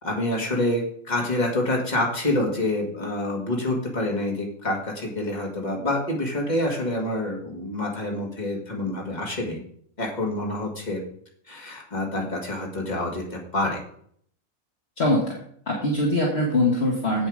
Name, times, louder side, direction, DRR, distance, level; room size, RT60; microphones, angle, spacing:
voice 1, 0.0-9.6 10.0-11.0 11.5-13.8, left 1 dB, 30° left, 0 dB, 2.1 m, -27 dB
voice 2, 15.0-15.4 15.7-17.3, left 1 dB, 50° left, -1 dB, 1.7 m, -22 dB
8.0 x 7.3 x 5.0 m, 0.63 s
omnidirectional pair, 1.5 m